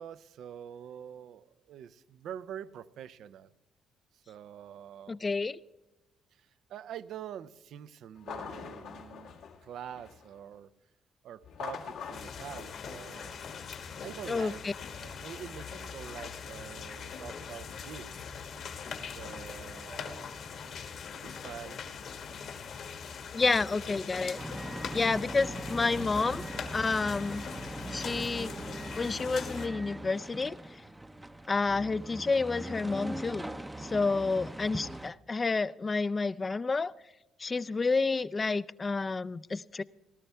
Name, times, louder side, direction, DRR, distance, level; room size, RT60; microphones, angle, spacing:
voice 1, 0.0-3.5 4.1-5.2 6.3-10.7 11.2-13.4 14.0-14.6 15.0-18.1 19.0-20.4 21.2-21.8, right 9 dB, 75° right, 15 dB, 0.5 m, -45 dB
voice 2, 5.1-5.6 14.3-14.7 23.3-24.4 24.9-26.4 26.7-27.4 27.9-28.5 29.0-30.5 31.5-33.5 33.8-36.9 37.4-39.8, left 4 dB, 30° left, 16 dB, 0.4 m, -29 dB
sound 1, 8.2-10.4 11.4-13.9, left 6 dB, 85° left, 1.7 m, -44 dB
sound 2, 12.1-29.7, left 6 dB, 70° left, 1.6 m, -42 dB
sound 3, 24.4-35.1, right 1 dB, 10° right, 0.6 m, -41 dB
18.0 x 12.0 x 3.4 m, 0.98 s
cardioid pair, 80°, 0 cm